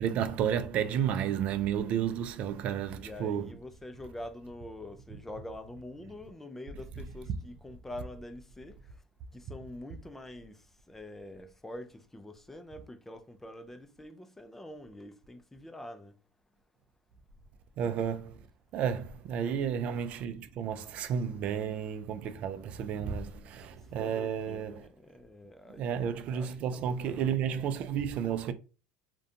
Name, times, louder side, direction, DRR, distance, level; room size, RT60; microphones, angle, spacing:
voice 1, 0.0-3.5 17.8-18.4 18.7-24.9 25.8-28.5, right 8 dB, 50° right, 0.4 m, -32 dB
voice 2, 2.9-8.8 9.3-10.6 10.9-16.1 23.9-27.6, left 1 dB, 10° left, 0.4 m, -46 dB
2.5 x 2.2 x 2.6 m
hypercardioid pair, 90°, 3 cm